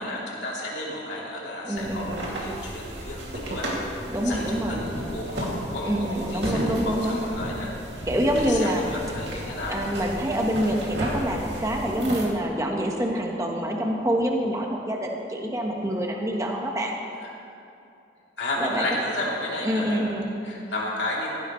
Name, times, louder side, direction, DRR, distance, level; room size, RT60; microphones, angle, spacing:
voice 1, 0.0-3.7 4.2-7.7 8.5-9.8 17.2-17.3 18.4-20.0 20.4-21.3, left 1 dB, 75° left, -5 dB, 3.2 m, -32 dB
voice 2, 1.6-2.2 4.1-4.8 5.8-7.2 8.1-8.9 9.7-17.0 18.6-18.9 19.6-20.3, equal, 15° right, 0 dB, 1.3 m, -26 dB
sound 1, 1.8-12.2, right 1 dB, 70° right, 2.5 m, -33 dB
16.0 x 15.5 x 3.2 m, 2.6 s
head